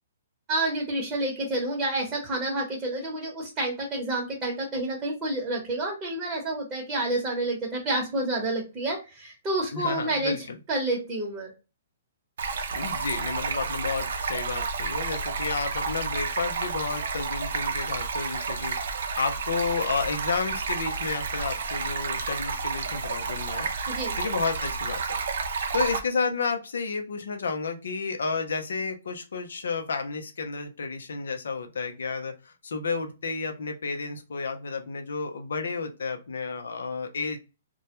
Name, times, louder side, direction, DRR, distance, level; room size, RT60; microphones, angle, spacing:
voice 1, 0.5-10.3 10.7-11.5 23.9-24.2, right 2 dB, 20° right, -3 dB, 0.9 m, -29 dB
voice 2, 9.7-10.6 12.7-23.7 24.2-25.0 25.7-37.4, left 4 dB, 75° left, 6 dB, 0.5 m, -31 dB
Stream, 12.4-26.0, right 5 dB, 70° right, 0.4 m, -31 dB
2.1 x 2.0 x 2.9 m, 0.29 s
hypercardioid pair, 135°, 0 cm